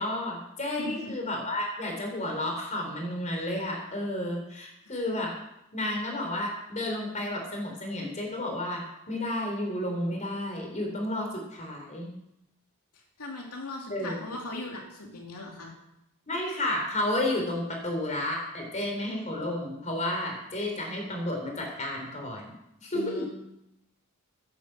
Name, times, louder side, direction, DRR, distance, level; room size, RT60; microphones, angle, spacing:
voice 1, 0.0-5.3 5.7-12.1 13.9-14.2 16.3-22.5 22.8-23.2, left 1 dB, 35° left, 1 dB, 3.8 m, -31 dB
voice 2, 0.8-1.1 4.9-5.0 12.9-15.7 22.9-23.3, left 2 dB, 85° left, 0 dB, 2.7 m, -39 dB
10.5 x 10.0 x 7.7 m, 0.85 s
head